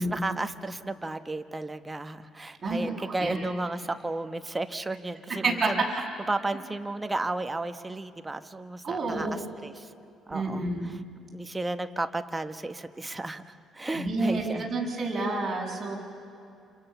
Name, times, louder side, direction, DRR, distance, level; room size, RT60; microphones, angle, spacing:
voice 1, 0.0-5.8 6.3-9.9 10.3-11.0 11.3-14.7, right 2 dB, 15° right, 9 dB, 1.2 m, -33 dB
voice 2, 3.1-3.4 5.3-5.7 8.8-9.4 10.3-10.9 13.9-16.0, right 3 dB, 30° right, -2 dB, 7.6 m, -29 dB
30.0 x 28.0 x 7.0 m, 2.5 s
cardioid pair, 120°, 0 cm